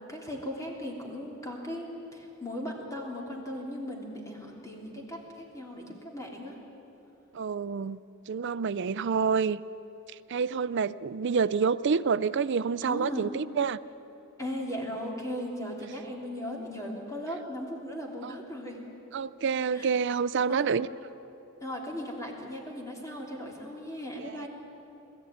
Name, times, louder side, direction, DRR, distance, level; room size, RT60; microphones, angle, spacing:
voice 1, 0.1-6.6 12.8-13.4 14.4-18.8 19.7-19.9 20.5-20.7 21.6-24.5, equal, 15° left, -1 dB, 3.1 m, -37 dB
voice 2, 7.3-8.0 8.3-9.6 10.3-13.8 18.2-18.3 19.1-20.9 24.2-24.5, right 6 dB, 55° right, 17 dB, 0.5 m, -28 dB
21.0 x 14.5 x 9.3 m, 2.9 s
head